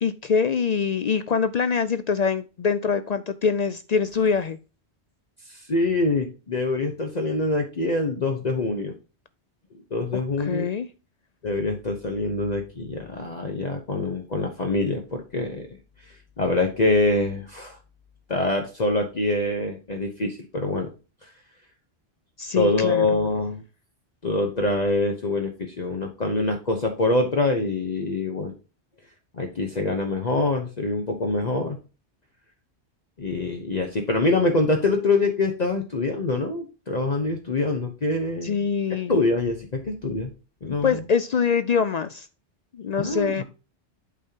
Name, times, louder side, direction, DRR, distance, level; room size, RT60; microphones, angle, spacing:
voice 1, 0.0-4.6 10.4-10.9 22.4-23.0 38.4-39.2 40.7-42.3 42.7-43.4, left 6 dB, 55° left, 13 dB, 0.4 m, -24 dB
voice 2, 5.5-8.9 9.9-10.7 11.4-15.7 16.4-17.8 18.3-20.9 22.5-23.6 24.2-28.5 29.3-31.8 33.2-38.6 39.1-40.3 40.6-41.0 43.0-43.4, left 2 dB, 40° left, 3 dB, 1.0 m, -25 dB
8.4 x 5.5 x 2.8 m, 0.33 s
omnidirectional pair, 1.1 m